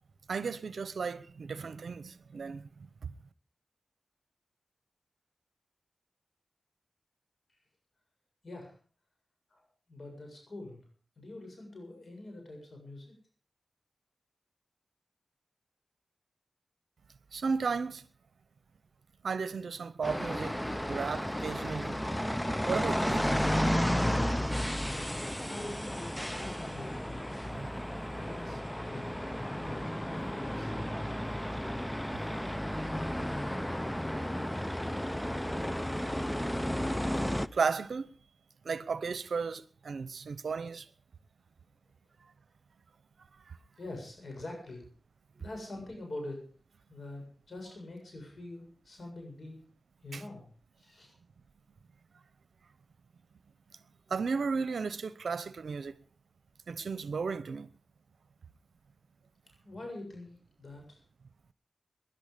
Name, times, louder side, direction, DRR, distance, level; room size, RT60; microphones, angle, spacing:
voice 1, 0.3-2.6 17.3-18.0 19.2-20.6 20.9-22.0 22.7-23.3 27.5-27.7 37.5-38.1 38.6-40.8 50.1-50.2 54.1-55.9 56.7-57.7, right 5 dB, 85° right, 0.8 m, -34 dB
voice 2, 8.4-8.8 9.5-10.8 11.2-13.1 25.5-27.3 27.9-31.0 43.8-44.9 45.4-46.5 46.9-49.6 50.0-50.5 50.8-51.1 59.6-60.3 60.6-61.0, left 2 dB, 70° left, 7.4 m, -45 dB
sound 1, 20.0-37.5, equal, 10° left, 0.7 m, -33 dB
20.0 x 11.0 x 5.1 m
cardioid pair, 50°, 0 cm